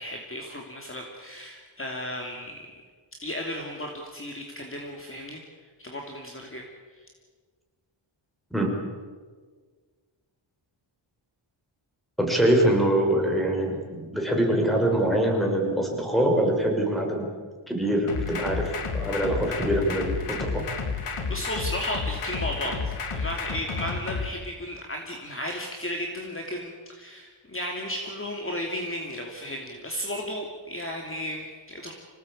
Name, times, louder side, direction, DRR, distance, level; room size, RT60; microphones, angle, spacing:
voice 1, 0.0-2.6 3.2-5.4 5.8-6.6 21.3-31.9, equal, 25° left, 1 dB, 2.8 m, -34 dB
voice 2, 12.2-17.2 17.7-18.7 18.9-20.6, right 1 dB, ahead, 1 dB, 5.8 m, -24 dB
sound 1, 18.1-24.3, left 5 dB, 85° left, 2.6 m, -31 dB
26.0 x 18.0 x 8.8 m, 1.5 s
wide cardioid pair, 120°, 50 cm